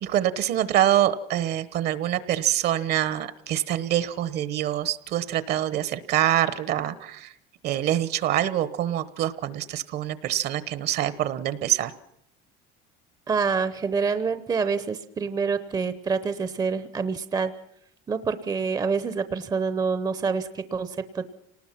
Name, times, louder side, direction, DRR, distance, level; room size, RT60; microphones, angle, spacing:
voice 1, 0.0-7.3 7.6-11.9, right 12 dB, 55° right, 15 dB, 1.1 m, -25 dB
voice 2, 13.3-17.5 18.1-21.3, right 5 dB, 20° right, 12 dB, 0.7 m, -27 dB
27.5 x 19.0 x 5.8 m, 0.78 s
cardioid pair, 140°, 20 cm